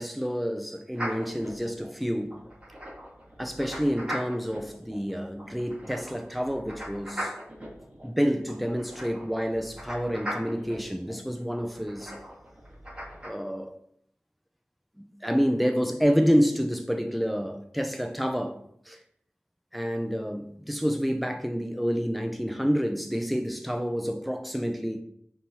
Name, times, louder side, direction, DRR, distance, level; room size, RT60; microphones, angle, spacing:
voice 1, 0.0-2.3 3.4-7.3 8.0-12.1 13.2-13.8 15.0-18.6 18.9-19.0 19.7-25.0, equal, ahead, 0.5 m, -28 dB
sound 1, 0.9-13.3, equal, 20° right, 1.5 m, -40 dB
5.2 x 2.8 x 2.9 m
wide cardioid pair, 60°, 5 cm